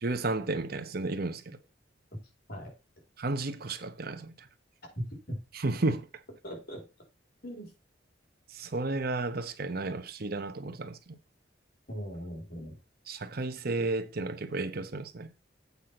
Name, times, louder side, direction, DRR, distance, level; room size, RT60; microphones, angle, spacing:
voice 1, 0.0-1.6 3.2-4.3 5.5-6.1 8.5-11.0 13.1-15.3, right 2 dB, 55° right, 0.9 m, -32 dB
voice 2, 4.9-5.4 6.4-6.8 7.4-7.7 11.9-12.8, equal, 55° left, 4.8 m, -39 dB
8.2 x 5.3 x 5.9 m
head